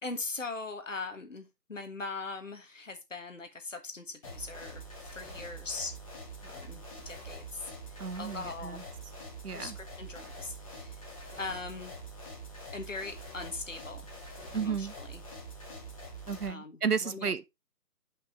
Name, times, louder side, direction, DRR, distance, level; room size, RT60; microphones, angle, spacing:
voice 1, 0.0-4.8 5.1-5.9 6.4-8.8 9.5-11.1 11.4-11.9 12.7-14.0 14.5-15.2 16.5-17.3, left 3 dB, 50° left, 1.5 m, -40 dB
sound 1, 4.2-16.5, right 1 dB, 20° left, 1.8 m, -45 dB
voice 2, 8.0-8.8 9.4-9.8 14.5-14.9 16.3-17.4, right 6 dB, 70° right, 0.8 m, -33 dB
9.4 x 5.4 x 3.0 m
figure-of-eight pair, 160°, 49 cm